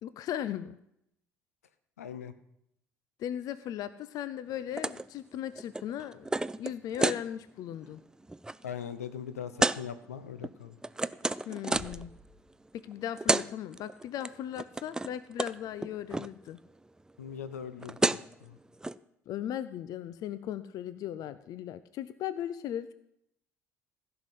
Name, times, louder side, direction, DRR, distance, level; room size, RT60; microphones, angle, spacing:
voice 1, 0.0-0.8 3.2-6.3 6.6-8.0 11.5-12.1 12.7-16.6 19.3-22.9, left 10 dB, 50° left, 14 dB, 0.6 m, -37 dB
voice 2, 2.0-2.3 8.6-10.8 17.2-18.6, left 8 dB, 80° left, 12 dB, 0.8 m, -41 dB
sound 1, 4.8-5.1 5.3-7.2 7.7-7.9 8.2-8.6 9.6-9.8 10.4-12.0 12.9-13.0 13.2-13.5 13.7-14.3 14.5-15.1 15.4-15.5 15.8-16.3 17.5-17.6 17.8-18.3 18.8-18.9, right 2 dB, 10° right, 0.4 m, -30 dB
Bass drum, 11.7-13.2, equal, 10° left, 2.7 m, -51 dB
15.5 x 5.8 x 8.1 m, 0.77 s
figure-of-eight pair, 55°, 8 cm